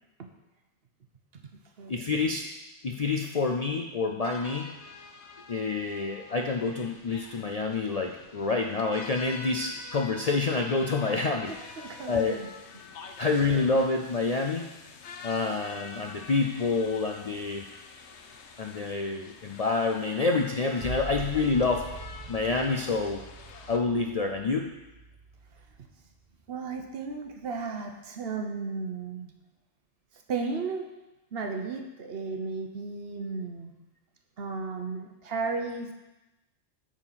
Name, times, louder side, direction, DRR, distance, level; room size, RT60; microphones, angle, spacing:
voice 1, 1.9-2.4 2.8-4.7 5.5-11.7 12.1-12.4 13.2-14.7 15.2-17.6 18.6-21.9 22.3-23.2 23.7-24.7, left 3 dB, 50° left, 2 dB, 0.4 m, -27 dB
sound 1, 4.2-23.8, left 5 dB, 70° left, 1.0 m, -47 dB
voice 2, 11.8-12.5 26.5-29.3 30.3-30.9 31.3-33.7 34.4-35.9, right 4 dB, 60° right, 4 dB, 1.0 m, -34 dB
sound 2, 20.8-26.2 26.7-27.3, right 3 dB, 40° right, 1.8 m, -43 dB
8.9 x 4.4 x 5.7 m, 1.0 s
omnidirectional pair, 1.2 m